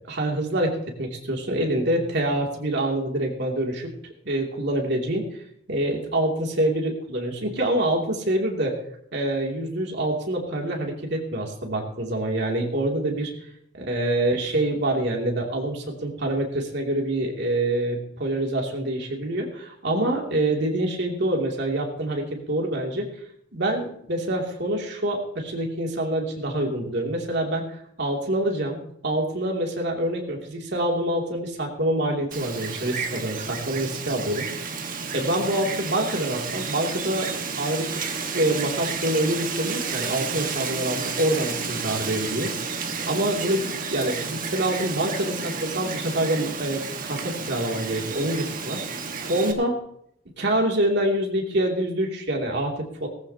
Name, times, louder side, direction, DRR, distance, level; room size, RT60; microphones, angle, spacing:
voice 1, 0.1-3.9 4.2-5.3 5.7-8.7 9.1-13.3 13.9-23.1 23.5-27.7 28.0-28.8 29.0-38.0 38.3-49.7 50.4-53.1, right 1 dB, 60° right, 0 dB, 2.8 m, -26 dB
Wind, 32.3-49.5, right 5 dB, 45° right, 1.5 m, -31 dB
18.5 x 14.5 x 2.9 m, 0.71 s
head